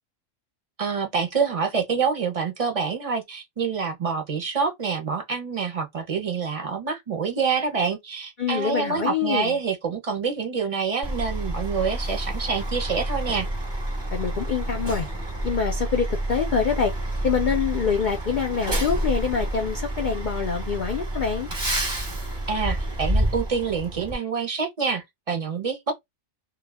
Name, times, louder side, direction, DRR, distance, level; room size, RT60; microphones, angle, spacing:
voice 1, 0.8-13.5 22.5-25.9, right 5 dB, 45° right, 0.4 m, -27 dB
voice 2, 8.4-9.6 14.1-15.1 15.4-16.9 17.2-21.5, left 6 dB, 65° left, 0.4 m, -25 dB
Truck, 11.0-24.2, right 1 dB, 25° right, 0.8 m, -29 dB
2.2 x 2.1 x 3.3 m
omnidirectional pair, 1.3 m